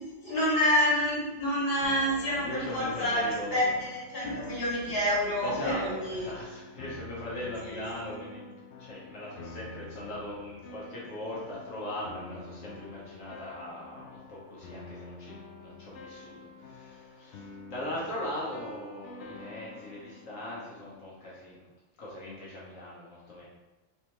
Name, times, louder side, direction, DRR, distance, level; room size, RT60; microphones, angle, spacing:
voice 1, 0.0-6.4 7.6-7.8, equal, 50° left, -7 dB, 1.8 m, -28 dB
sound 1, 1.8-21.1, left 4 dB, 70° left, 0.9 m, -47 dB
voice 2, 2.4-3.7 5.4-8.5 8.8-15.3 15.6-21.6 22.0-23.4, left 1 dB, 90° left, -7 dB, 1.5 m, -39 dB
4.2 x 3.4 x 3.0 m, 1.1 s
omnidirectional pair, 1.3 m